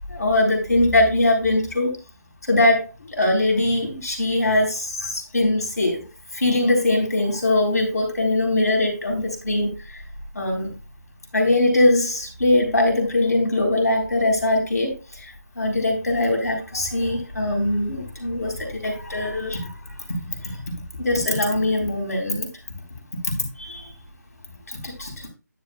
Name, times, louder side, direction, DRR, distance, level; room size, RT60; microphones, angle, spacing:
voice 1, 0.1-1.9 2.5-6.0 6.3-10.0 10.3-10.7 11.3-19.6 20.4-20.7 21.0-22.5 23.6-23.9 24.7-25.1, left 2 dB, 60° left, 2 dB, 3.9 m, -21 dB
10.5 x 9.1 x 2.3 m, 0.29 s
figure-of-eight pair, 155°, 9 cm